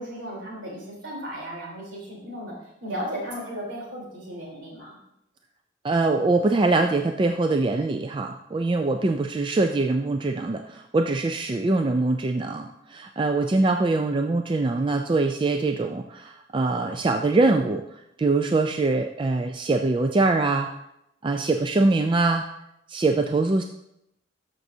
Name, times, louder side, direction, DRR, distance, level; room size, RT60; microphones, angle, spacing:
voice 1, 0.0-2.5 2.8-5.0, equal, 70° right, -5 dB, 3.5 m, -35 dB
voice 2, 5.8-17.8 18.2-20.7 21.2-22.4 22.9-23.6, right 3 dB, 25° right, 5 dB, 0.3 m, -23 dB
13.0 x 6.0 x 2.7 m, 0.82 s
head